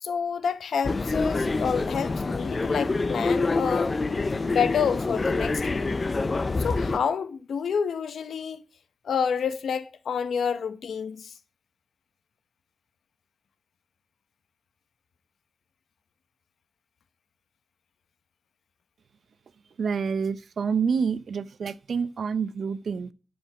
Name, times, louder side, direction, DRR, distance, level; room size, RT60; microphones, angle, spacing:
voice 1, 0.0-3.9 4.4-5.9 6.6-8.6 9.0-11.3, left 6 dB, 90° left, 0.9 m, -28 dB
sound 1, 0.8-7.0, left 3 dB, 30° left, 0.5 m, -26 dB
voice 2, 19.8-23.1, right 6 dB, 60° right, 0.6 m, -28 dB
11.5 x 5.3 x 6.9 m
wide cardioid pair, 180°, 0 cm